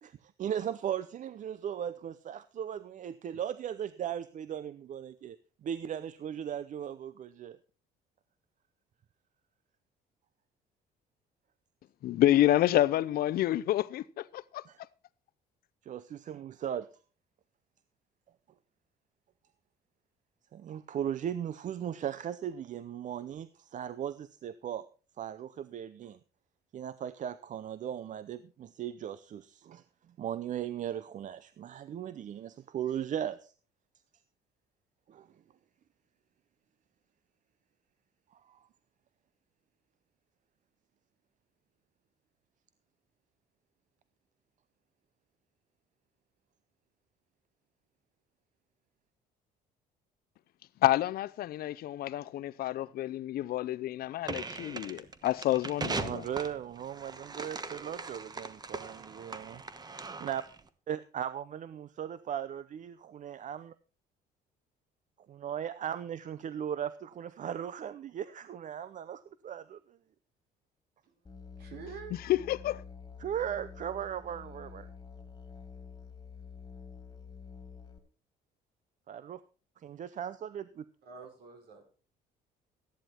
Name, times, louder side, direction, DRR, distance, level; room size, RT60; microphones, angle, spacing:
voice 1, 0.0-7.6 14.7-14.8 15.8-16.9 20.5-24.8 25.2-26.2 26.7-29.8 30.2-33.5 35.1-35.3 38.3-38.6 56.0-59.6 60.2-60.4 60.9-63.7 65.3-70.0 73.2-74.9 79.1-79.4 79.8-80.9, right 9 dB, 50° right, 0.7 m, -38 dB
voice 2, 12.0-14.6 50.8-56.2 72.2-72.8, left 13 dB, 65° left, 0.6 m, -28 dB
sound 1, 54.2-60.6, right 4 dB, 25° right, 1.2 m, -40 dB
Musical instrument, 71.3-78.0, left 5 dB, 25° left, 2.3 m, -48 dB
voice 3, 71.4-72.2 81.0-81.8, right 6 dB, 70° right, 5.2 m, -47 dB
14.0 x 10.5 x 4.4 m
cardioid pair, 110°, 17 cm